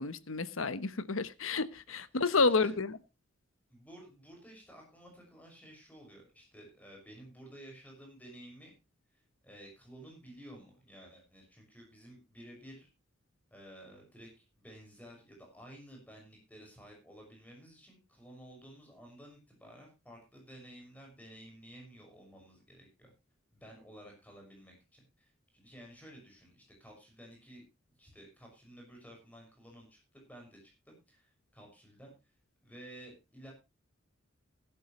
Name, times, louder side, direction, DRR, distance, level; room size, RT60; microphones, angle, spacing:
voice 1, 0.0-2.9, left 4 dB, 90° left, 1.1 m, -30 dB
voice 2, 2.3-2.7 3.7-8.7 9.1-12.9 13.5-23.1 23.5-27.6 28.0-32.1 32.6-33.5, right 1 dB, 10° left, 6.3 m, -53 dB
17.0 x 11.0 x 3.2 m
head